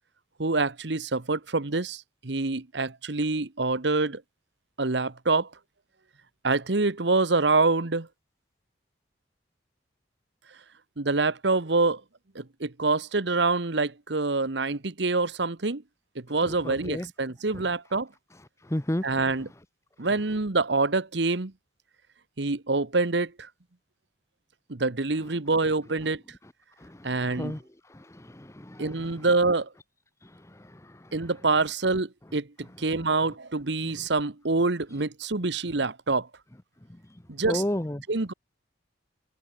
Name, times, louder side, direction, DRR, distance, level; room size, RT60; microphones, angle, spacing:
voice 1, 0.4-4.2 4.8-5.5 6.4-8.1 11.0-12.0 12.3-15.8 16.1-18.1 19.0-19.5 20.0-21.5 22.4-23.5 24.7-26.2 27.0-27.6 28.8-29.7 31.1-36.3 37.3-37.6 38.1-38.3, right 3 dB, 65° right, 1.2 m, -26 dB
voice 2, 16.6-17.1 18.7-19.0 27.4-27.6 28.3-28.8 37.5-38.0, left 1 dB, 15° left, 1.0 m, -30 dB
head